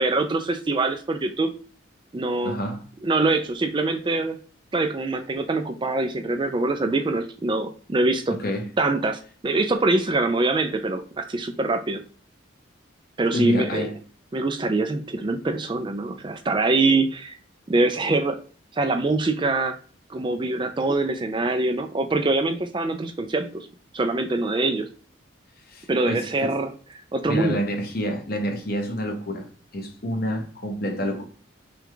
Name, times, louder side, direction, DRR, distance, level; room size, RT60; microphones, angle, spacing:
voice 1, 0.0-1.5 2.1-2.6 3.0-4.4 4.7-8.4 8.8-12.0 13.2-13.8 14.3-17.4 17.7-18.4 18.7-19.8 20.1-23.7 23.9-24.9 25.9-26.7 27.1-27.6, right 2 dB, 25° right, 0.3 m, -24 dB
voice 2, 2.4-2.8 8.3-8.7 13.3-13.9 25.7-26.5 27.3-29.5 29.7-31.2, equal, 45° left, 0.9 m, -28 dB
5.9 x 2.3 x 3.7 m
head